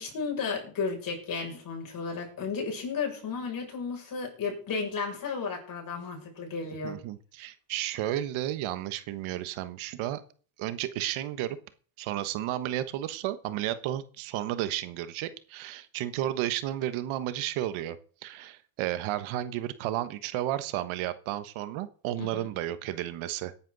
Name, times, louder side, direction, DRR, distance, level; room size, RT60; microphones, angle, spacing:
voice 1, 0.0-7.0 22.2-22.5, left 5 dB, 40° left, 1 dB, 6.6 m, -33 dB
voice 2, 6.8-10.2 10.6-11.6 12.0-18.0 18.2-23.6, right 13 dB, 70° right, 12 dB, 1.3 m, -32 dB
18.0 x 10.5 x 4.0 m, 0.43 s
cardioid pair, 125°, 50 cm